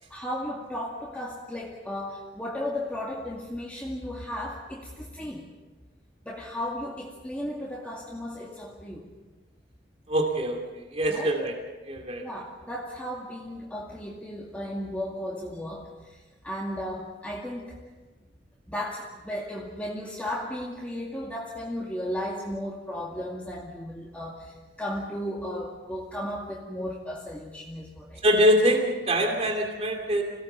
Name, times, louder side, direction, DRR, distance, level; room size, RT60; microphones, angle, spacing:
voice 1, 0.1-5.5 6.2-9.1 11.1-11.4 12.2-17.8 18.7-28.2, left 1 dB, 10° left, -4 dB, 2.2 m, -35 dB
voice 2, 10.1-10.6 10.9-11.5 11.9-12.2 28.2-30.2, equal, 35° right, 2 dB, 2.7 m, -23 dB
27.0 x 18.0 x 6.9 m, 1.2 s
head